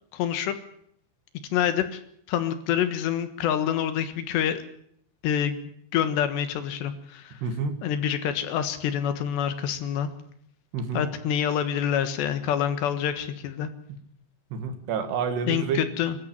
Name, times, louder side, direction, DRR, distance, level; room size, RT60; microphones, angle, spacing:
voice 1, 0.1-0.6 1.5-2.0 2.3-4.6 5.2-7.4 7.8-10.1 10.9-13.7 15.5-16.2, left 9 dB, 80° left, 10 dB, 3.6 m, -27 dB
voice 2, 7.4-7.8 10.7-11.0 13.9-14.0 14.5-15.8, right 5 dB, 70° right, 7 dB, 4.0 m, -28 dB
24.5 x 13.5 x 8.8 m, 0.67 s
omnidirectional pair, 5.1 m